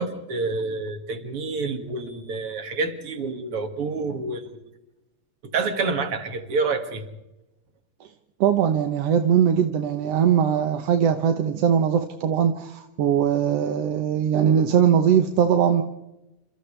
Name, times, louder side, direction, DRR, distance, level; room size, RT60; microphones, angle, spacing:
voice 1, 0.0-4.6 5.5-7.0, right 4 dB, 45° right, 5 dB, 2.8 m, -28 dB
voice 2, 8.4-15.8, right 8 dB, 65° right, 6 dB, 1.8 m, -20 dB
29.0 x 28.0 x 3.4 m, 0.95 s
omnidirectional pair, 3.7 m